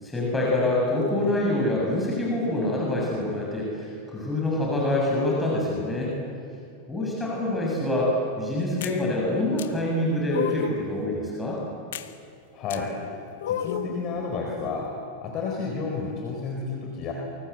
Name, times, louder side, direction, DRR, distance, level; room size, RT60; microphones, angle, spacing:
voice 1, 0.0-6.1 6.9-8.1 8.4-11.6, left 1 dB, 10° left, -4 dB, 7.1 m, -26 dB
sound 1, 8.8-9.0 9.6-9.7 10.3-10.8 11.9-12.1 12.7-12.8 13.4-14.0, left 10 dB, 60° left, 1.3 m, -30 dB
voice 2, 12.5-12.9 13.5-14.9 15.2-17.1, left 4 dB, 35° left, 0 dB, 4.6 m, -31 dB
28.0 x 24.5 x 8.1 m, 2.5 s
figure-of-eight pair, 90°, 0 cm